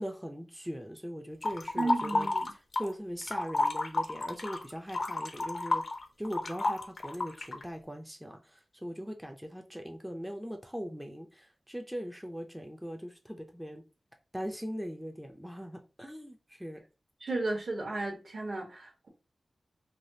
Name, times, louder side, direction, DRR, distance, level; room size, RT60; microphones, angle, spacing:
voice 1, 0.0-5.8 6.2-13.8 14.3-16.8, equal, 5° right, 0.4 m, -40 dB
sound 1, 1.4-2.9 3.2-7.6, left 2 dB, 60° left, 0.5 m, -31 dB
voice 2, 1.7-2.5 17.2-19.1, right 2 dB, 65° right, 1.0 m, -34 dB
3.2 x 2.3 x 2.7 m
wide cardioid pair, 75°, 0 cm